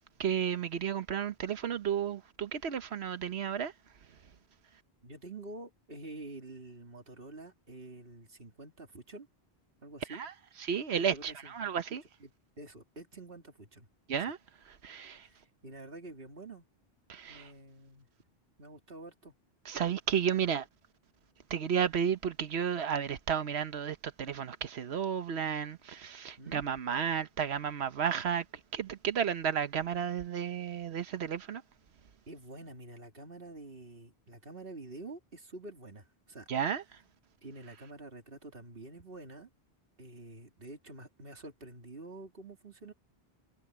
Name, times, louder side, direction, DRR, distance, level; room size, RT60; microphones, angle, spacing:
voice 1, 0.2-3.7 10.1-10.3 10.6-12.0 14.1-14.4 14.7-15.3 17.1-17.5 19.6-20.7 21.5-28.4 28.7-31.6 36.5-36.8, right 8 dB, 85° right, 1.2 m, -32 dB
voice 2, 5.0-9.3 9.8-10.2 10.9-11.7 12.2-12.3 12.6-13.9 15.2-16.6 17.3-18.1 18.6-19.3 26.4-26.6 32.3-36.5 37.4-39.5 40.0-42.9, right 2 dB, 65° right, 3.2 m, -48 dB
omnidirectional pair, 1.1 m